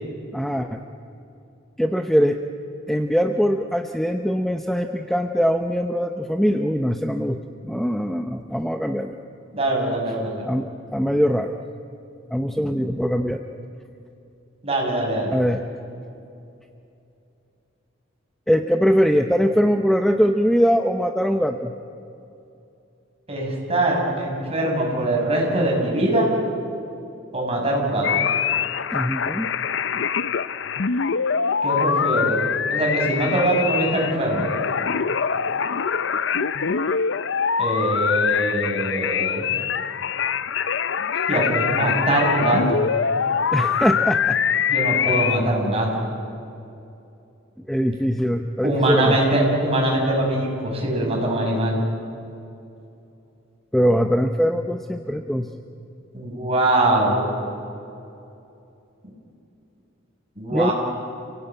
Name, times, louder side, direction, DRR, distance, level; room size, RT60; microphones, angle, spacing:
voice 1, 0.3-0.8 1.8-2.4 2.9-9.1 10.5-10.7 10.9-11.6 12.3-13.4 15.3-15.6 18.5-21.7 28.9-29.5 43.5-44.4 45.1-45.4 47.7-49.2 53.7-55.5 60.5-60.7, equal, ahead, 6 dB, 0.7 m, -22 dB
voice 2, 9.5-10.5 14.6-15.3 23.3-26.3 27.3-28.3 31.6-32.4 32.7-34.5 37.6-39.5 41.3-42.9 44.7-46.1 48.6-51.8 56.1-57.3 60.4-60.7, right 1 dB, 30° right, -1 dB, 6.3 m, -22 dB
sound 1, 28.0-45.4, left 7 dB, 65° left, 0.6 m, -24 dB
27.5 x 17.5 x 9.1 m, 2.7 s
head